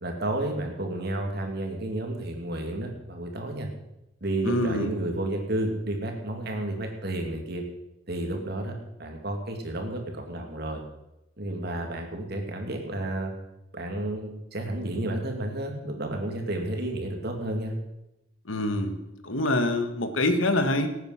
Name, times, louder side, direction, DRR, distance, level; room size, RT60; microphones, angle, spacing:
voice 1, 0.0-3.7 4.2-7.6 8.1-10.8 11.4-13.3 13.7-17.7, right 1 dB, 55° right, 3 dB, 2.5 m, -31 dB
voice 2, 4.4-4.9 18.4-20.9, left 1 dB, 80° left, 8 dB, 1.5 m, -25 dB
18.0 x 9.1 x 5.8 m, 0.90 s
head